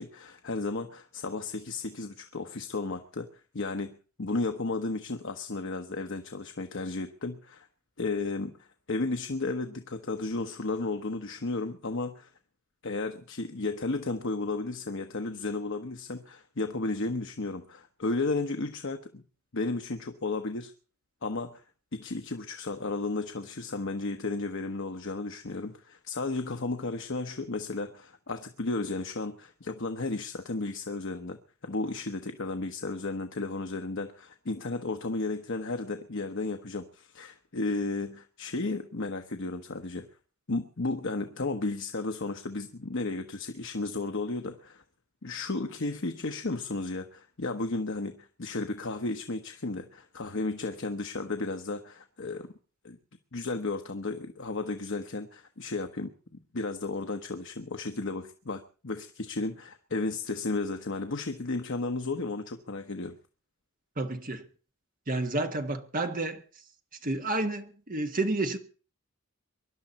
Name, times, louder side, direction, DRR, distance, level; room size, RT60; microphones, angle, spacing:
voice 1, 0.0-3.3 3.5-7.7 8.0-12.3 12.8-19.2 19.5-20.7 21.2-21.6 21.9-40.1 40.5-44.8 45.2-52.5 52.8-53.0 53.3-56.1 56.5-63.2, left 3 dB, 60° left, 1.0 m, -33 dB
voice 2, 64.0-64.4 65.1-66.4 67.0-68.6, right 2 dB, 40° right, 1.6 m, -30 dB
24.0 x 11.5 x 4.2 m
head